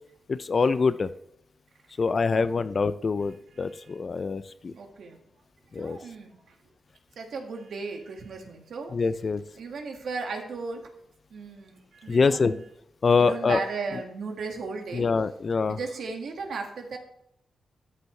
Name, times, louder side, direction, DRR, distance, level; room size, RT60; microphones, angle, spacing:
voice 1, 0.3-1.1 2.0-4.7 5.7-6.0 8.9-9.4 12.1-12.5 13.0-13.6 14.9-15.8, left 4 dB, 35° left, 14 dB, 0.4 m, -24 dB
voice 2, 2.3-2.6 4.8-5.2 5.8-6.3 7.2-8.9 9.6-10.8 11.3-11.7 12.0-12.6 13.1-15.1 15.7-17.0, right 4 dB, 70° right, 2 dB, 1.9 m, -35 dB
13.0 x 8.1 x 3.3 m, 0.78 s
wide cardioid pair, 155°, 0 cm